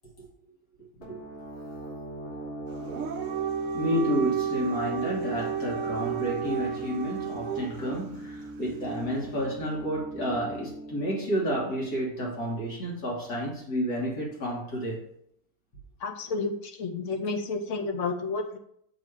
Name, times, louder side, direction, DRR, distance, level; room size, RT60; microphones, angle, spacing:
sound 1, 1.0-12.5, right 2 dB, 40° left, 3.2 m, -40 dB
Dog, 2.8-7.9, right 7 dB, 65° right, 0.9 m, -32 dB
voice 1, 3.7-15.0, equal, 80° left, -4 dB, 2.3 m, -30 dB
voice 2, 16.0-18.6, left 3 dB, 60° left, 4 dB, 0.9 m, -31 dB
7.4 x 3.1 x 4.8 m, 0.70 s
omnidirectional pair, 1.6 m